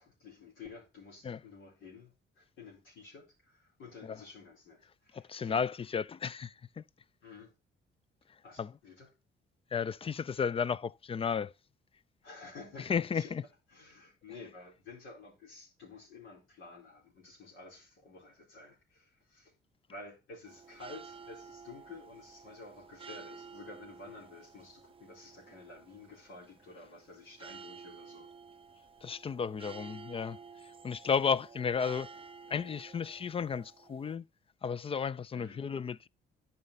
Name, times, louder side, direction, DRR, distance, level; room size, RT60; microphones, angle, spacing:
voice 1, 0.0-5.7 7.2-7.5 8.4-9.1 12.2-13.3 13.7-19.5 19.9-28.3 35.3-35.6, left 3 dB, 80° left, 4.4 m, -51 dB
voice 2, 5.1-6.8 8.6-8.7 9.7-11.5 12.9-13.4 29.0-30.4 30.8-32.1 32.5-34.2 34.6-36.1, left 6 dB, 30° left, 0.4 m, -33 dB
sound 1, 20.5-34.2, right 5 dB, 25° right, 0.5 m, -52 dB
9.4 x 5.7 x 4.1 m
cardioid pair, 90°, 20 cm